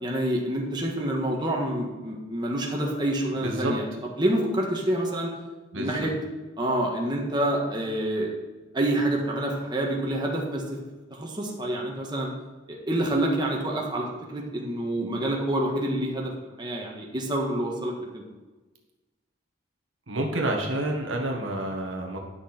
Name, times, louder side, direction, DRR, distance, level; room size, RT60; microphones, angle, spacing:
voice 1, 0.0-3.8 4.2-5.3 5.7-6.1 6.6-8.3 8.7-10.6 11.1-12.3 12.7-14.1 14.3-16.3 16.6-18.2, right 1 dB, 25° right, -2 dB, 1.6 m, -27 dB
voice 2, 3.4-3.7 5.7-6.1 20.1-22.2, right 1 dB, 90° right, 1 dB, 1.6 m, -29 dB
10.5 x 6.2 x 4.4 m, 1.2 s
head